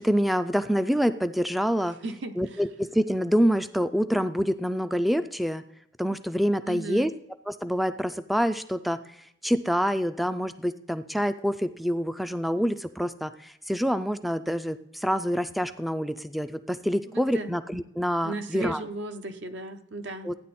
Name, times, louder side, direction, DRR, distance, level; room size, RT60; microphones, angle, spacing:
voice 1, 0.0-2.0 2.4-5.6 6.0-7.1 7.5-18.8 20.2-20.3, equal, ahead, 11 dB, 0.3 m, -26 dB
voice 2, 1.8-2.3 6.6-7.1 12.6-12.7 17.1-17.5 18.2-20.3, right 2 dB, 75° right, 7 dB, 0.9 m, -36 dB
13.5 x 9.5 x 4.2 m, 0.80 s
head